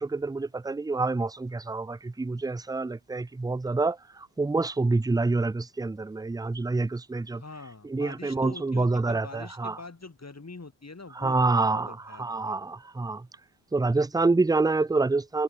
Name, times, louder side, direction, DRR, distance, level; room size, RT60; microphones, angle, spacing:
voice 1, 0.0-4.0 4.4-7.4 7.9-9.8 11.2-13.2 13.7-15.4, right 3 dB, 10° right, 0.4 m, -27 dB
voice 2, 7.4-12.6, left 3 dB, 35° left, 5.5 m, -44 dB
cardioid pair, 55°, 46 cm